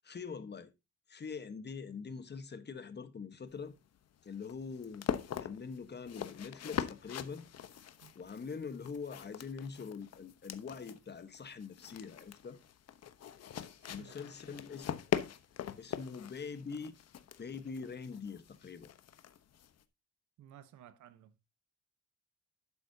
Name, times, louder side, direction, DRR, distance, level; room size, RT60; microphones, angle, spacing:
voice 1, 0.0-0.7 1.1-3.7 4.2-5.1 5.4-7.4 8.1-12.6 13.9-15.3 15.8-16.9 17.4-18.9, left 5 dB, 35° left, 1.3 m, -44 dB
sound 1, 3.5-19.8, left 9 dB, 55° left, 1.0 m, -42 dB
voice 2, 13.6-14.1 14.5-14.6 20.4-21.5, right 10 dB, 75° right, 1.1 m, -57 dB
11.5 x 8.4 x 2.8 m
cardioid pair, 90°, 30 cm